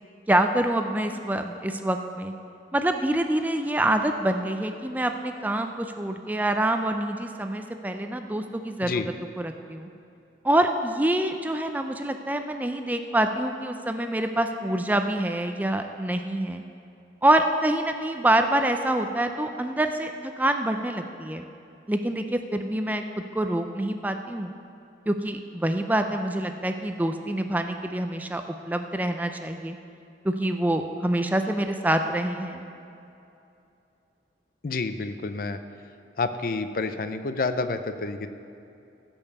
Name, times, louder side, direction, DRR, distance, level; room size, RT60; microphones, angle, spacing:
voice 1, 0.3-2.3 2.7-8.9 9.4-9.9 10.4-16.6 17.2-21.4 21.9-23.0 23.3-24.5 25.1-29.8 30.2-32.7, right 1 dB, 10° right, 6 dB, 0.4 m, -26 dB
voice 2, 34.6-35.6 36.2-38.3, left 3 dB, 50° left, 10 dB, 0.5 m, -29 dB
15.5 x 5.4 x 6.8 m, 2.7 s
head